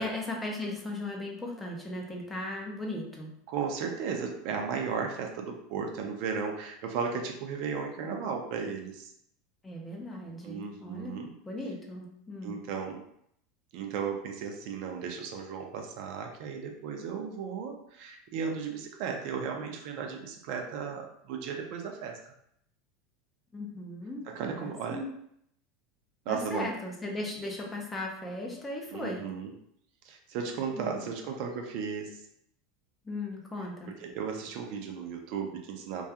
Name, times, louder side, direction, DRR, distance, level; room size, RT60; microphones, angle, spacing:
voice 1, 0.0-3.3 9.6-12.6 23.5-24.2 24.5-25.1 26.3-29.3 30.8-31.0 33.0-34.0, left 2 dB, 15° left, 0 dB, 0.5 m, -37 dB
voice 2, 3.5-9.1 10.4-11.3 12.4-13.0 13.7-22.3 24.3-25.0 26.3-26.7 28.9-29.5 30.0-32.2 34.0-36.0, right 6 dB, 60° right, 3 dB, 0.4 m, -35 dB
2.3 x 2.3 x 2.7 m, 0.72 s
supercardioid pair, 135°, 0 cm